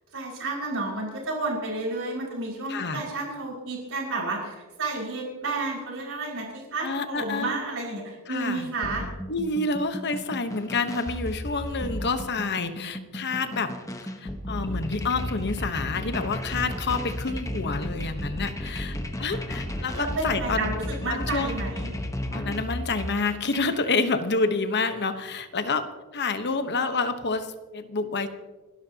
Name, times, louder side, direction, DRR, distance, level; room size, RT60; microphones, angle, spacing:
voice 1, 0.1-9.0 19.9-21.9, right 3 dB, 65° right, -2 dB, 5.6 m, -31 dB
voice 2, 2.7-3.0 6.8-7.6 8.3-8.7 9.3-13.7 14.2-20.7 21.1-21.6 22.3-28.3, left 3 dB, 50° left, 9 dB, 1.1 m, -28 dB
sound 1, 8.8-23.8, left 1 dB, 15° left, 1.1 m, -34 dB
30.0 x 12.5 x 2.9 m, 1.3 s
head